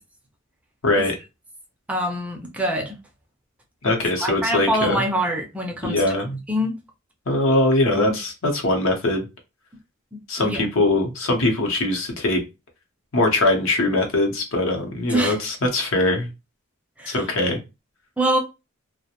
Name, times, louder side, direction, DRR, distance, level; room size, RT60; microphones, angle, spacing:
voice 1, 0.8-1.2 3.8-5.1 5.8-6.4 7.3-9.3 10.3-12.4 13.1-16.3 17.1-17.6, left 2 dB, 70° left, 0.8 m, -21 dB
voice 2, 1.9-3.0 4.2-6.0 6.5-6.8 7.9-8.1 10.4-10.6 15.1-15.4 17.0-17.3 18.2-18.4, equal, 5° right, 0.4 m, -24 dB
2.4 x 2.1 x 2.8 m
head